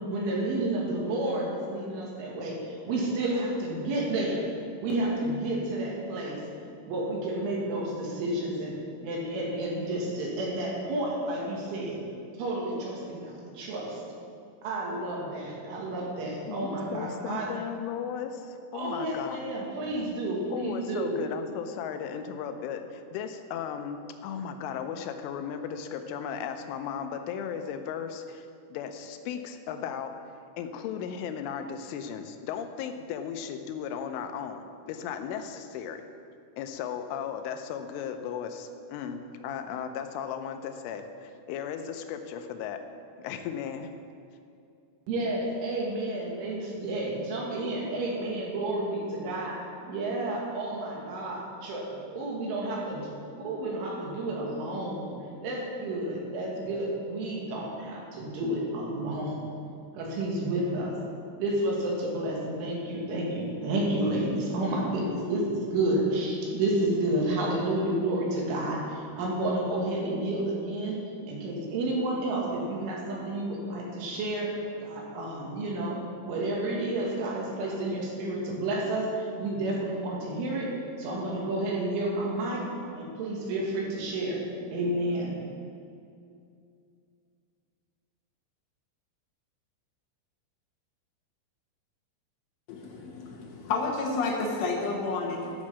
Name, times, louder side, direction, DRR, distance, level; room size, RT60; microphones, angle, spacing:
voice 1, 0.0-4.4 4.8-6.4 6.9-8.7 9.0-12.0 12.4-14.0 14.6-17.5 18.7-21.2 45.1-49.6 49.8-53.1 53.4-55.1 55.4-59.5 59.9-61.0 61.4-71.0 71.3-80.7 81.0-82.6 82.9-84.4 84.7-85.4, right 1 dB, 80° right, -3 dB, 4.5 m, -30 dB
voice 2, 16.5-19.5 20.5-30.2 30.6-36.1 36.6-42.8 43.2-43.9, left 7 dB, 90° left, 7 dB, 3.2 m, -36 dB
voice 3, 92.7-95.5, left 3 dB, 70° left, -2 dB, 3.5 m, -30 dB
13.0 x 6.3 x 7.3 m, 2.5 s
omnidirectional pair, 5.5 m